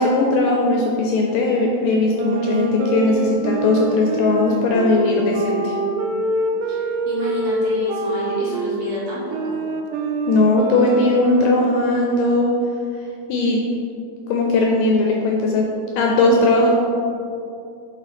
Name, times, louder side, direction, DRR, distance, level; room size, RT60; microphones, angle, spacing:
voice 1, 0.0-5.7 10.3-12.5 13.3-13.6 14.3-15.7 16.0-16.7, left 2 dB, 80° left, 0 dB, 2.0 m, -18 dB
sound 1, 2.2-8.9 9.3-12.3, right 2 dB, 80° right, 1.9 m, -25 dB
voice 2, 5.7-6.0 6.7-9.6, equal, 55° right, -8 dB, 2.2 m, -29 dB
7.4 x 4.2 x 5.1 m, 2.6 s
omnidirectional pair, 4.3 m